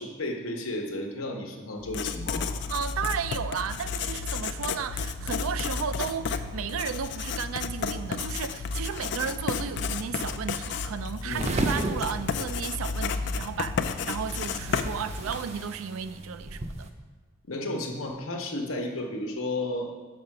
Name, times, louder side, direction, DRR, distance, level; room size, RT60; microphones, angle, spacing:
voice 1, 0.0-2.5 11.2-11.5 17.5-19.9, left 1 dB, 85° left, 2 dB, 1.0 m, -33 dB
Writing, 1.8-15.6, left 5 dB, 55° left, 0.3 m, -32 dB
voice 2, 2.7-16.9, right 7 dB, 85° right, 12 dB, 0.4 m, -34 dB
sound 1, 11.3-16.9, right 2 dB, 30° right, 0.5 m, -35 dB
6.4 x 5.3 x 5.8 m, 1.3 s
head